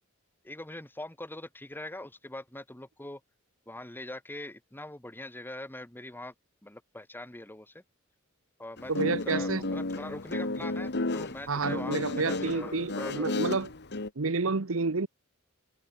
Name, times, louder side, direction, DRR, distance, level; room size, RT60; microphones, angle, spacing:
voice 1, 0.4-3.2 3.7-6.3 6.6-7.8 8.6-13.3, left 1 dB, 10° left, 1.5 m, -42 dB
Guitar, 8.8-14.1, left 2 dB, 55° left, 1.8 m, -33 dB
voice 2, 8.9-9.7 11.5-13.7 14.2-15.1, right 4 dB, 70° right, 1.0 m, -29 dB
head